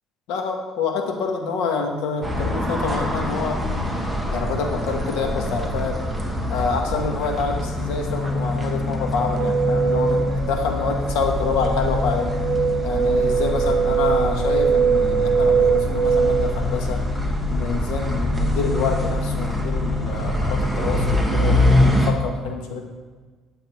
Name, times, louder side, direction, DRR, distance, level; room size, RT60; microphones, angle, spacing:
voice 1, 0.3-3.6 4.3-6.0 6.5-12.3 12.8-17.0 17.5-22.9, left 5 dB, 85° left, 3 dB, 1.6 m, -27 dB
sound 1, 2.2-22.1, left 1 dB, ahead, 1.1 m, -24 dB
sound 2, 9.4-16.5, right 6 dB, 75° right, 1.0 m, -22 dB
11.0 x 7.7 x 4.6 m, 1.4 s
cardioid pair, 140°, 0 cm